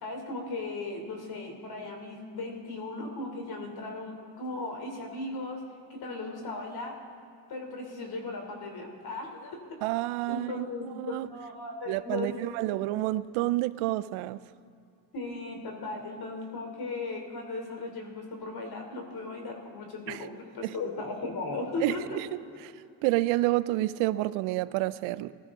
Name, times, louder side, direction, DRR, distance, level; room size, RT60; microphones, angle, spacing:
voice 1, 0.0-5.6 5.9-7.0 7.5-9.6 10.3-12.4 12.8-12.9 15.1-22.2 22.5-22.6, left 3 dB, 50° left, 3.4 m, -37 dB
voice 2, 9.8-11.3 11.9-14.4 20.1-20.2 20.6-20.7 21.8-22.3 23.0-25.3, right 17 dB, 85° right, 0.6 m, -29 dB
20.0 x 13.0 x 3.8 m
cardioid pair, 100°, 47 cm